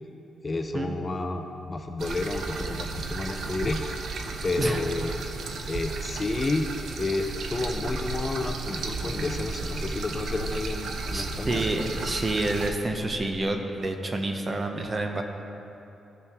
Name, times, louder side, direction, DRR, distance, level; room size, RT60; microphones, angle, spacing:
voice 1, 0.4-4.2 4.4-5.1 5.7-6.7 7.0-11.8, left 2 dB, 20° left, 5 dB, 0.4 m, -30 dB
sound 1, 2.0-12.7, right 4 dB, 65° right, 0.6 m, -34 dB
voice 2, 4.4-4.8 11.1-15.2, right 2 dB, 25° right, 4 dB, 0.7 m, -29 dB
Buzz, 7.3-13.5, equal, 85° left, 1.0 m, -39 dB
14.5 x 5.6 x 3.5 m, 2.9 s
cardioid pair, 155°, 0 cm